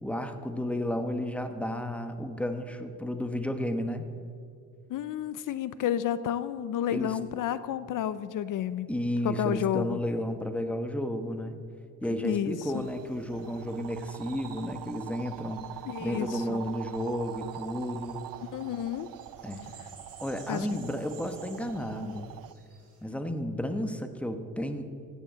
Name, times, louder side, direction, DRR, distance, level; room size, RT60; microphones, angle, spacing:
voice 1, 0.0-4.1 6.9-7.2 8.9-11.6 12.0-15.6 16.0-18.2 19.4-19.7 20.2-22.3 23.0-24.8, equal, 5° left, 8 dB, 1.2 m, -32 dB
voice 2, 4.9-8.9 9.2-10.0 12.2-12.9 15.8-16.6 18.5-19.1 20.5-20.7, left 10 dB, 65° left, 15 dB, 0.6 m, -31 dB
sound 1, 12.6-23.1, right 5 dB, 45° right, 4.6 m, -57 dB
sound 2, 12.7-22.5, right 14 dB, 75° right, 0.6 m, -44 dB
15.5 x 10.0 x 7.6 m, 2.6 s
cardioid pair, 105°, 33 cm